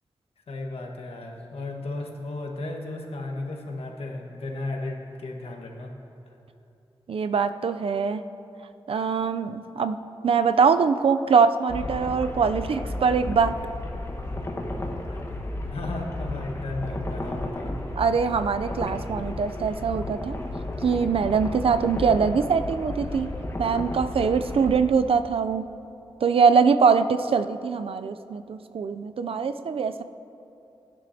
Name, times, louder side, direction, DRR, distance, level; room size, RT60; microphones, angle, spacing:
voice 1, 0.5-5.9 6.3-6.4 15.1-15.3 15.7-17.8, left 2 dB, 85° left, 1 dB, 1.4 m, -34 dB
voice 2, 7.1-8.2 8.9-10.0 10.2-13.5 18.0-20.4 20.8-23.3 23.6-25.6 26.2-30.0, right 5 dB, 75° right, 10 dB, 0.4 m, -23 dB
sound 1, 11.7-24.8, left 1 dB, 30° left, 1.3 m, -33 dB
19.5 x 10.5 x 2.8 m, 2.8 s
wide cardioid pair, 115°, 10 cm